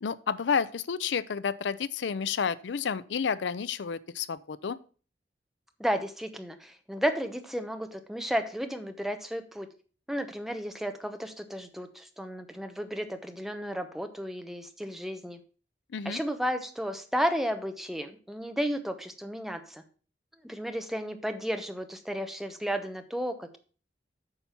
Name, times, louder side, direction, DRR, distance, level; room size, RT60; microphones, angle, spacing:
voice 1, 0.0-4.8 15.9-16.2, left 6 dB, 80° left, 17 dB, 0.5 m, -30 dB
voice 2, 5.8-9.7 10.1-15.4 16.0-19.8 20.4-23.6, equal, ahead, 7 dB, 0.9 m, -33 dB
8.9 x 5.5 x 5.8 m, 0.39 s
head